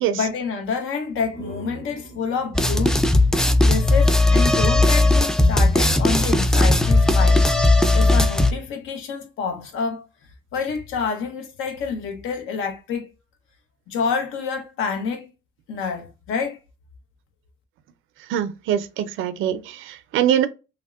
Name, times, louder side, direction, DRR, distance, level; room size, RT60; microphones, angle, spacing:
voice 1, 0.1-3.0 3.6-7.4 7.9-10.1 10.5-13.1 13.9-15.3 15.7-16.6, left 5 dB, 85° left, 0.8 m, -28 dB
sound 1, 1.0-4.7, right 1 dB, 40° left, 1.4 m, -42 dB
sound 2, 2.5-8.5, left 2 dB, 5° left, 0.3 m, -17 dB
voice 2, 18.3-20.5, right 10 dB, 85° right, 0.4 m, -23 dB
3.5 x 2.1 x 2.3 m
cardioid pair, 90°, 20 cm